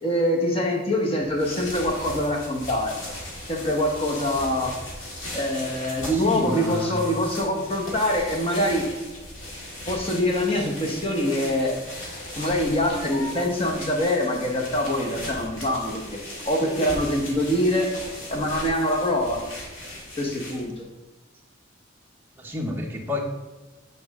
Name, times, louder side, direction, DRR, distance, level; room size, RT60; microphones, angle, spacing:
voice 1, 0.0-2.9 3.5-4.7 5.3-8.9 9.9-11.7 12.3-16.2 16.5-17.9 18.3-19.4 20.2-20.9, left 1 dB, 30° left, 1 dB, 1.1 m, -24 dB
sound 1, 1.2-20.8, left 1 dB, 85° left, 1.9 m, -38 dB
voice 2, 6.0-6.9 22.4-23.2, left 1 dB, 10° right, -1 dB, 0.9 m, -30 dB
8.6 x 4.2 x 3.6 m, 1.2 s
head